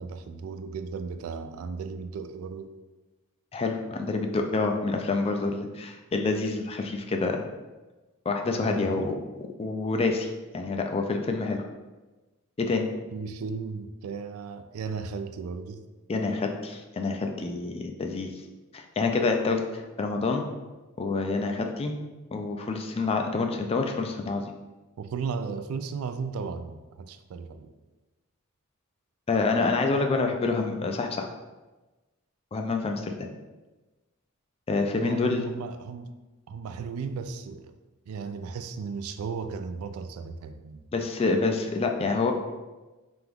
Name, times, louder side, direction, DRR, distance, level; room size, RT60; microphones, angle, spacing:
voice 1, 0.0-2.7 8.6-9.2 13.1-15.8 25.0-27.7 35.0-36.1 36.5-37.8 38.1-40.8, right 5 dB, 75° right, 10 dB, 0.3 m, -35 dB
voice 2, 3.5-7.4 8.3-9.1 9.6-11.6 12.6-12.9 16.1-18.3 18.7-20.4 21.0-21.9 22.3-24.5 29.3-31.3 32.5-33.3 34.7-35.4 40.9-42.3, left 3 dB, 25° left, 3 dB, 0.3 m, -27 dB
3.5 x 2.9 x 3.5 m, 1.2 s
head